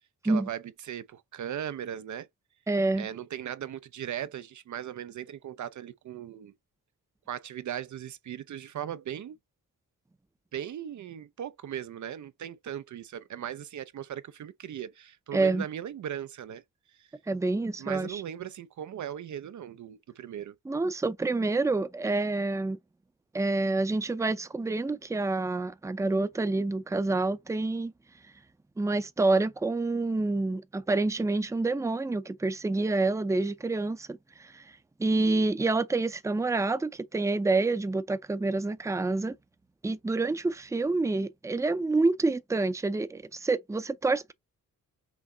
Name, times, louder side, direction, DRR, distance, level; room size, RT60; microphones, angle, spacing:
voice 1, 0.2-2.3 3.0-6.5 7.3-9.4 10.5-16.6 17.0-17.1 17.8-20.5, right 10 dB, 60° right, 0.5 m, -38 dB
voice 2, 2.7-3.1 15.3-15.6 17.3-18.2 20.7-22.8 23.3-27.9 28.8-34.6 35.0-39.4 39.8-44.3, right 3 dB, 10° right, 0.5 m, -27 dB
6.0 x 2.1 x 3.8 m
cardioid pair, 90°, 34 cm